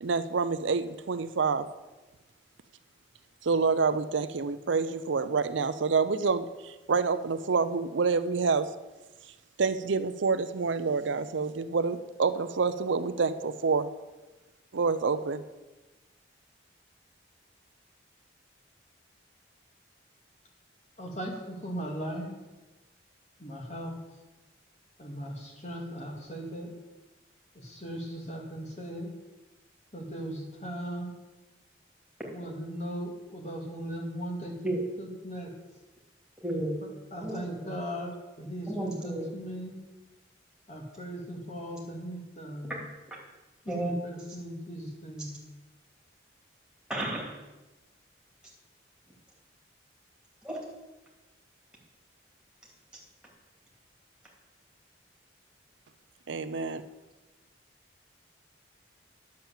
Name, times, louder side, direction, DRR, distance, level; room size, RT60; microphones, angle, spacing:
voice 1, 0.0-1.7 3.4-8.7 9.6-13.9 14.7-15.4 56.3-56.8, right 4 dB, 80° right, 11 dB, 0.6 m, -27 dB
voice 2, 21.0-22.3 23.4-24.0 25.0-26.8 27.5-29.1 29.9-31.2 32.3-34.5 35.0-35.5 36.8-39.8 40.7-42.7 43.6-45.4, equal, 35° left, 0 dB, 2.2 m, -38 dB
voice 3, 36.4-36.7 37.2-37.7 38.7-39.3 43.7-44.0 46.9-47.3 50.4-50.6, right 1 dB, 5° right, -3 dB, 2.7 m, -32 dB
10.0 x 7.6 x 7.2 m, 1.1 s
head